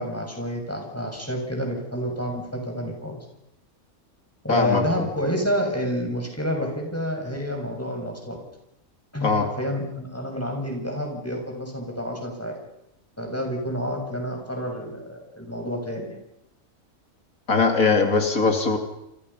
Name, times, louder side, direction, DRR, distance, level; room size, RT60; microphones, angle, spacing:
voice 1, 0.0-3.2 4.4-8.4 9.1-12.6 13.2-16.2, equal, 10° left, 2 dB, 6.8 m, -29 dB
voice 2, 4.5-5.1 9.2-9.5 17.5-18.8, left 4 dB, 85° left, 5 dB, 3.3 m, -21 dB
29.0 x 28.5 x 5.7 m, 0.83 s
omnidirectional pair, 1.4 m